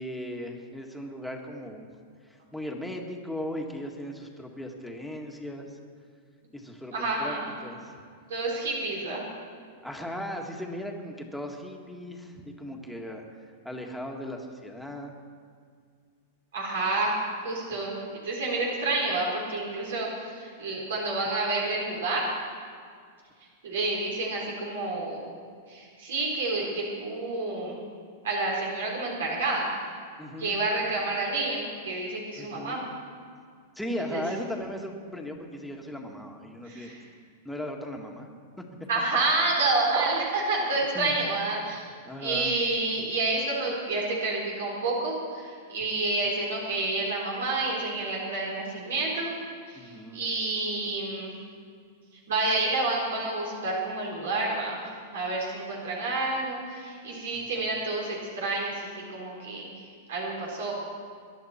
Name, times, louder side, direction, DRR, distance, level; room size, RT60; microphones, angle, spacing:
voice 1, 0.0-1.9 2.2-5.8 6.5-7.4 7.6-7.9 9.8-13.3 13.6-15.1 30.2-30.6 32.4-32.8 33.8-36.9 37.5-38.3 40.9-41.1 42.1-42.5 49.7-50.2 57.3-57.4 57.7-57.8, left 1 dB, ahead, 1 dB, 1.8 m, -37 dB
voice 2, 6.9-7.5 8.3-9.2 16.5-17.2 17.4-22.3 23.6-25.2 25.7-27.8 28.2-29.7 30.4-32.8 33.8-34.2 36.6-37.0 38.9-41.9 42.2-49.3 49.7-51.4 52.3-54.8 55.1-59.7 60.1-60.7, right 2 dB, 80° right, -3 dB, 4.1 m, -29 dB
sound 1, 39.9-40.5, right 11 dB, 50° right, 0.7 m, -31 dB
22.0 x 11.0 x 4.4 m, 2.1 s
hypercardioid pair, 125°, 0 cm